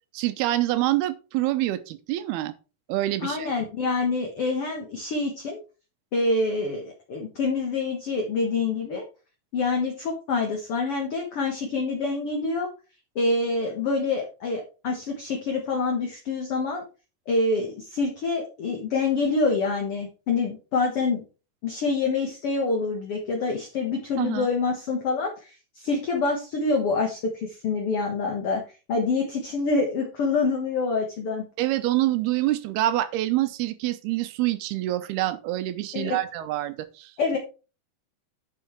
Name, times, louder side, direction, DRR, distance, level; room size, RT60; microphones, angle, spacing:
voice 1, 0.1-2.5 2.9-3.5 24.2-24.5 31.6-37.1, right 15 dB, 85° right, 2.9 m, -26 dB
voice 2, 3.2-5.6 6.1-9.1 9.5-12.7 13.2-16.8 17.3-21.2 21.6-28.6 28.9-31.4 35.9-36.2 37.2-37.4, left 3 dB, 50° left, 1.8 m, -26 dB
9.6 x 5.6 x 4.6 m
omnidirectional pair, 4.4 m